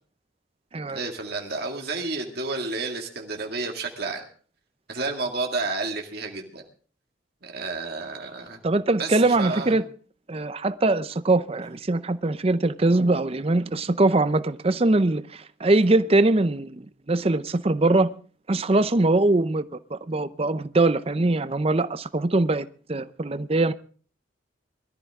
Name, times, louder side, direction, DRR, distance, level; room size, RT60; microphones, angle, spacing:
voice 1, 0.9-4.2 4.9-6.6 7.4-8.6 9.0-9.8, right 3 dB, 55° right, 2.1 m, -31 dB
voice 2, 8.6-9.8 10.3-18.1 18.5-23.7, right 2 dB, 30° right, 0.6 m, -22 dB
21.5 x 13.5 x 3.6 m
head